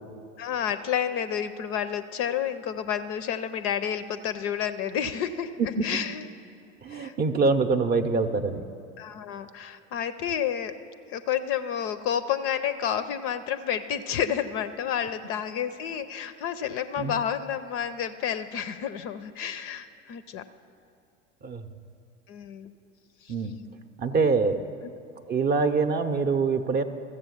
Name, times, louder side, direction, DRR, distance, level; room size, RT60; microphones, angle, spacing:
voice 1, 0.4-6.2 6.9-7.1 9.0-10.8 11.1-20.4 22.3-22.7 23.2-23.3, left 9 dB, 40° left, 12 dB, 0.5 m, -30 dB
voice 2, 6.8-8.6 17.0-17.2 21.4-21.6 23.3-23.5 24.0-24.7 25.3-26.8, right 4 dB, 25° right, 8 dB, 0.7 m, -24 dB
14.0 x 7.6 x 7.2 m, 2.5 s
figure-of-eight pair, 80°, 37 cm